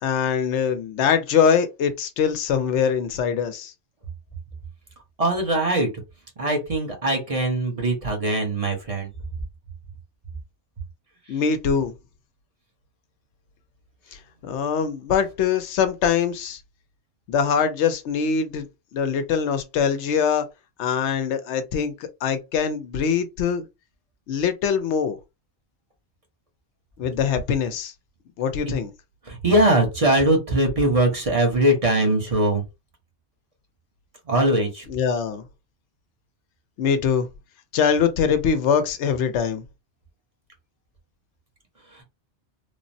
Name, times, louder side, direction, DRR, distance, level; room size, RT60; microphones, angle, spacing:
voice 1, 0.0-3.7 11.3-11.9 14.4-16.6 17.3-18.7 18.9-20.5 20.8-21.9 22.2-23.6 24.3-25.2 27.0-27.9 28.4-28.9 34.9-35.5 36.8-37.3 37.7-39.6, left 7 dB, 85° left, 0.9 m, -23 dB
voice 2, 5.2-5.9 6.4-9.1 29.3-32.6 34.3-34.9, right 1 dB, 35° right, 0.9 m, -21 dB
3.2 x 2.0 x 2.6 m
omnidirectional pair, 1.1 m